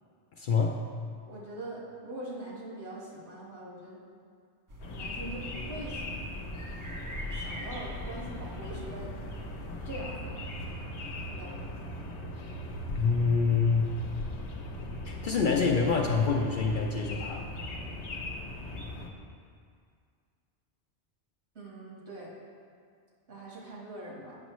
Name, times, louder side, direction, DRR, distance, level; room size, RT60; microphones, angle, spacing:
voice 1, 0.4-0.8 12.4-12.5 12.9-13.9 15.0-17.5, left 5 dB, 60° left, 1 dB, 0.6 m, -26 dB
voice 2, 1.3-4.0 4.9-6.0 7.4-9.1 9.8-10.5 11.3-11.7 21.6-22.3 23.3-24.4, right 1 dB, 70° right, -5 dB, 1.8 m, -42 dB
sound 1, 4.7-10.0, equal, 30° right, 0.4 m, -42 dB
sound 2, 4.8-19.1, left 1 dB, 75° left, 1.0 m, -39 dB
8.6 x 6.2 x 3.1 m, 2.2 s
omnidirectional pair, 1.2 m